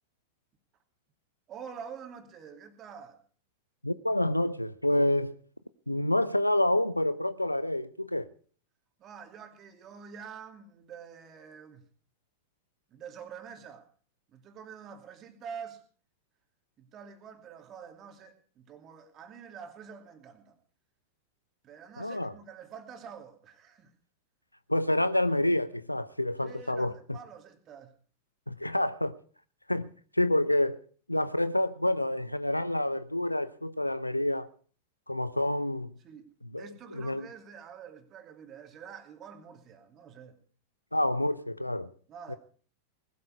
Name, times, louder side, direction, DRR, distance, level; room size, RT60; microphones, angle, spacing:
voice 1, 1.5-3.2 9.0-11.8 12.9-13.9 14.3-15.8 16.8-20.6 21.6-23.9 26.4-27.9 36.0-36.3 36.6-40.4 42.1-42.4, right 7 dB, 30° right, 2.8 m, -47 dB
voice 2, 3.8-5.4 5.9-8.3 22.0-22.3 24.7-27.2 28.5-29.2 29.7-29.9 30.1-30.8 31.1-34.5 35.1-35.9 36.4-37.3 40.9-41.9 42.3-42.4, left 1 dB, 85° left, 0.7 m, -28 dB
19.5 x 12.5 x 4.8 m
figure-of-eight pair, 90°, 0 cm